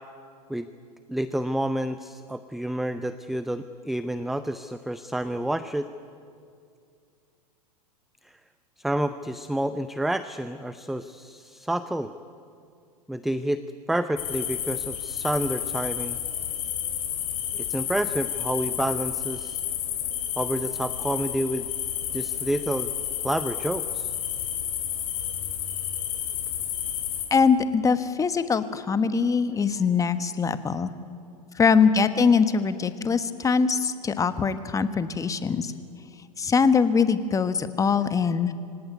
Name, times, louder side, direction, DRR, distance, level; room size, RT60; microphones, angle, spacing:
voice 1, 1.1-5.9 8.2-8.4 8.8-12.1 13.1-13.6 13.9-16.2 17.5-19.6 20.4-21.7 22.1-22.9 23.2-24.1, right 1 dB, ahead, 12 dB, 0.6 m, -29 dB
sound 1, 14.2-27.3, left 10 dB, 60° left, 5.5 m, -31 dB
voice 2, 27.3-30.9 31.6-35.7 36.4-38.5, left 5 dB, 15° left, 12 dB, 1.3 m, -22 dB
25.0 x 18.0 x 9.5 m, 2.4 s
hypercardioid pair, 105°, 20 cm